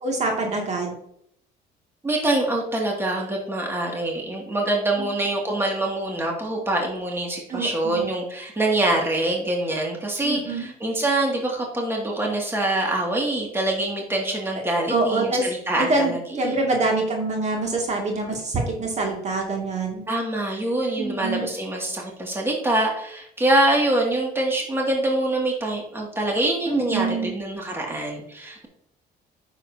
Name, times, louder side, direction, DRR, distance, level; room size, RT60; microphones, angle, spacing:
voice 1, 0.0-0.9 5.0-5.1 7.5-8.1 10.2-10.7 14.9-15.4 15.8-20.0 21.0-21.5 26.7-27.3, right 2 dB, 40° right, 0 dB, 2.4 m, -25 dB
voice 2, 2.0-16.6 20.1-28.7, right 1 dB, 15° right, -1 dB, 2.4 m, -25 dB
10.0 x 7.3 x 2.8 m, 0.69 s
cardioid pair, 110°, 17 cm